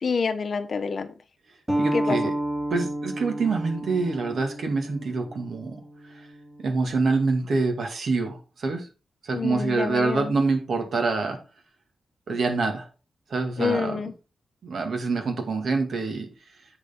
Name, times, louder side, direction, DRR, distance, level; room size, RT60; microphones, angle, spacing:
voice 1, 0.0-1.1 1.9-2.2 9.3-10.3 13.6-14.1, left 5 dB, 50° left, 0.9 m, -27 dB
sound 1, 1.7-6.9, right 1 dB, 10° right, 2.6 m, -31 dB
voice 2, 1.8-2.3 2.7-5.8 6.6-8.9 9.2-11.4 12.3-12.9 13.3-14.0 14.6-16.3, right 3 dB, 60° right, 2.1 m, -26 dB
8.0 x 6.6 x 3.7 m
wide cardioid pair, 125°, 0 cm